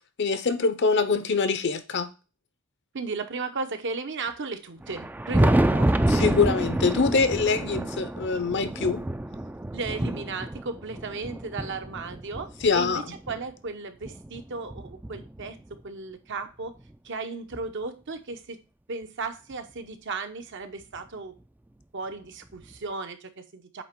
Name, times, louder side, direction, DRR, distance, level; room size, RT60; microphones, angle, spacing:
voice 1, 0.2-2.1 6.1-9.0 12.6-13.0, left 4 dB, 55° left, 0.7 m, -24 dB
voice 2, 2.9-6.0 9.7-15.6 15.8-16.7 17.0-18.6 18.9-21.4 21.9-23.8, right 4 dB, 60° right, 0.8 m, -35 dB
Thunder, 4.8-13.4 14.0-15.7 16.9-17.0 17.5-17.6 19.5-19.6 21.0-21.1 22.6-22.7, right 1 dB, 10° right, 0.3 m, -28 dB
8.4 x 3.0 x 4.4 m
head